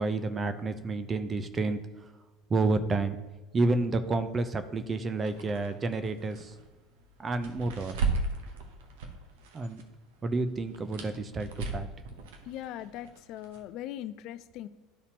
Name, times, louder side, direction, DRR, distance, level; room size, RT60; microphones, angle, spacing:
voice 1, 0.0-1.8 2.5-3.2 3.5-6.5 7.2-8.0 9.5-9.8 10.2-11.9, right 3 dB, 25° right, 10 dB, 0.7 m, -30 dB
sound 1, 5.2-9.8 10.1-13.6, right 3 dB, 65° right, 1.0 m, -36 dB
voice 2, 12.5-14.7, left 12 dB, 55° left, 13 dB, 0.3 m, -40 dB
12.0 x 4.1 x 2.9 m, 1.2 s
figure-of-eight pair, 70°, 0 cm